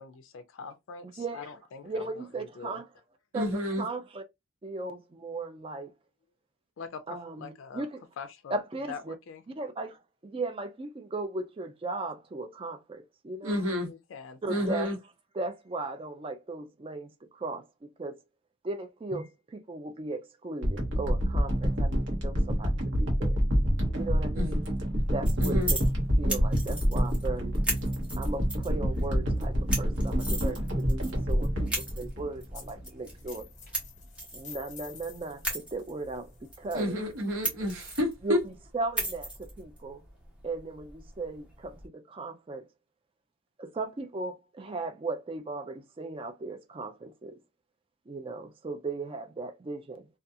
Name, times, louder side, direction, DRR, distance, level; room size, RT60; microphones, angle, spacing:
voice 1, 0.0-2.8 6.8-7.8 8.2-8.6 8.9-9.4 13.8-14.7, left 5 dB, 65° left, 0.3 m, -44 dB
voice 2, 1.8-2.9 3.3-3.5 3.8-4.2 4.6-5.9 7.1-8.0 8.5-9.1 9.6-13.7 14.4-14.9 15.3-17.6 18.0-18.2 18.6-23.4 23.9-24.6 25.1-25.8 26.2-27.6 28.2-33.5 34.3-37.0 38.2-40.0 40.4-42.6 43.6-47.4 48.1-50.1, right 3 dB, 25° right, 0.3 m, -37 dB
voice 3, 3.3-3.8 13.4-13.9 14.5-14.9 24.3-24.5 25.4-25.7 36.7-38.4, left 1 dB, 85° right, 1.0 m, -30 dB
sound 1, 20.6-32.8 33.4-33.5, equal, 60° right, 1.0 m, -27 dB
sound 2, 25.0-41.9, right 1 dB, 5° right, 0.9 m, -39 dB
sound 3, 32.5-32.9 33.1-37.9, left 6 dB, 35° left, 0.8 m, -50 dB
2.4 x 2.3 x 2.6 m
head